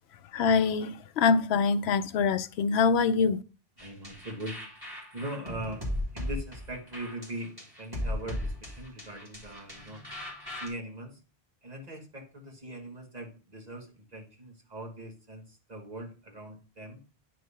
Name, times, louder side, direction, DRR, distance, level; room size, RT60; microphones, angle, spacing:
voice 1, 0.3-3.4, left 5 dB, 80° left, 0.9 m, -24 dB
sound 1, 3.8-10.7, left 1 dB, 20° right, 2.4 m, -37 dB
voice 2, 3.8-4.6 5.1-5.9 6.1-10.0 10.5-11.2 11.6-17.0, right 1 dB, 40° right, 1.9 m, -41 dB
9.3 x 3.2 x 5.5 m
omnidirectional pair, 1.1 m